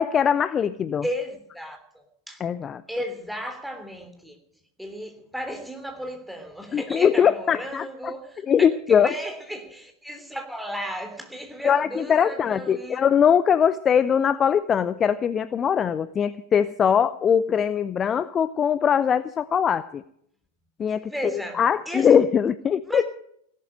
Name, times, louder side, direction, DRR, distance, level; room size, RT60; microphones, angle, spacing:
voice 1, 0.0-1.0 2.4-2.8 6.7-8.1 8.5-9.1 11.6-20.0 20.8-21.1 21.6-23.0, left 8 dB, 25° left, 0.5 m, -21 dB
voice 2, 1.0-2.5 2.9-4.4 4.8-13.0 21.0-22.2 22.8-23.0, equal, ahead, 3.2 m, -34 dB
17.0 x 12.0 x 6.5 m
figure-of-eight pair, 90°, 0 cm